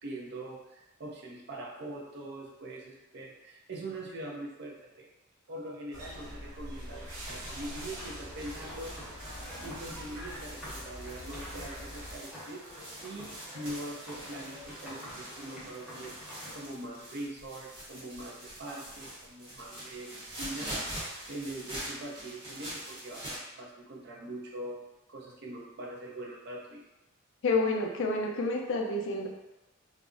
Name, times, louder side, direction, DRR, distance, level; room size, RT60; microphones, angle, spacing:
voice 1, 0.0-5.1 5.5-9.1 9.6-12.6 13.0-20.9 21.3-26.8, right 1 dB, 50° right, -2 dB, 0.6 m, -43 dB
sound 1, 5.9-12.2, equal, 70° right, 1.0 m, -44 dB
sound 2, 7.0-16.6, equal, ahead, 1.0 m, -47 dB
sound 3, 8.3-23.4, right 1 dB, 25° right, 0.9 m, -44 dB
voice 2, 27.4-29.3, left 2 dB, 60° left, 1 dB, 0.4 m, -29 dB
2.4 x 2.0 x 3.6 m, 0.99 s
head